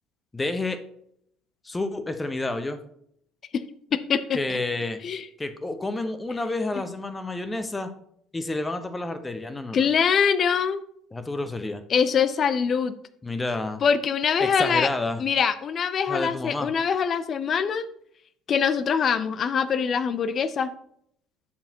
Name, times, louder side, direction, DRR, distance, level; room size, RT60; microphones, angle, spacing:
voice 1, 0.3-0.8 1.6-2.8 4.3-5.0 5.4-7.9 8.3-9.8 11.1-11.8 13.2-13.8 14.4-15.2 16.1-16.7, left 2 dB, 20° left, 9 dB, 1.0 m, -29 dB
voice 2, 3.9-4.6 5.0-5.2 9.7-10.8 11.9-13.0 13.8-14.9 15.2-17.9 18.5-20.7, left 6 dB, 45° left, 15 dB, 0.6 m, -23 dB
8.5 x 6.9 x 2.9 m, 0.70 s
hypercardioid pair, 60°, 0 cm